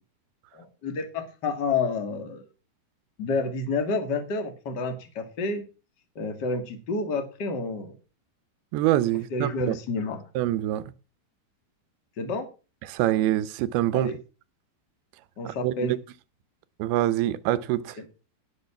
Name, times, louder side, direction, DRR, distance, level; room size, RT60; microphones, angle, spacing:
voice 1, 0.5-2.4 3.2-5.6 6.2-7.9 9.3-10.2 12.2-12.5 13.9-14.2 15.4-16.0 18.0-18.1, left 3 dB, 35° left, 2.0 m, -29 dB
voice 2, 8.7-9.8 10.4-10.8 12.9-14.1 15.5-16.0 16.8-17.9, right 14 dB, 85° right, 2.8 m, -25 dB
17.5 x 6.1 x 5.8 m
omnidirectional pair, 4.4 m